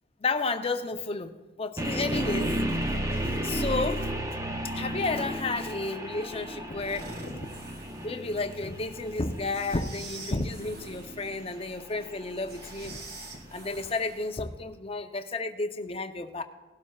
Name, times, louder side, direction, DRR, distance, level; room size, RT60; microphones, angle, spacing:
voice 1, 0.2-1.3 1.6-2.6 3.2-4.1 4.7-7.5 8.0-16.4, left 3 dB, 30° left, 7 dB, 0.6 m, -32 dB
sound 1, 1.8-13.7, right 1 dB, 15° right, 0.7 m, -34 dB
sound 2, 6.8-14.4, right 2 dB, 50° right, 2.0 m, -46 dB
19.0 x 12.0 x 2.4 m, 1.2 s
head